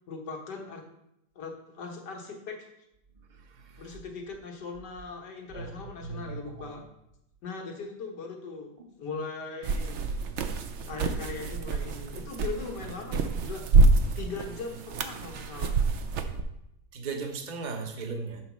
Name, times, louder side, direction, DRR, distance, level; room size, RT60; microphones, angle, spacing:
voice 1, 0.1-0.8 1.4-2.7 3.8-6.8 7.4-8.7 9.0-10.0 10.8-13.7 14.2-15.8, left 4 dB, 85° left, 1 dB, 1.9 m, -39 dB
voice 2, 6.0-6.7 16.9-18.4, right 4 dB, 35° right, 4 dB, 0.8 m, -36 dB
sound 1, 9.6-16.4, right 3 dB, 65° right, 0.7 m, -27 dB
7.5 x 4.0 x 6.1 m, 0.83 s
omnidirectional pair, 1.8 m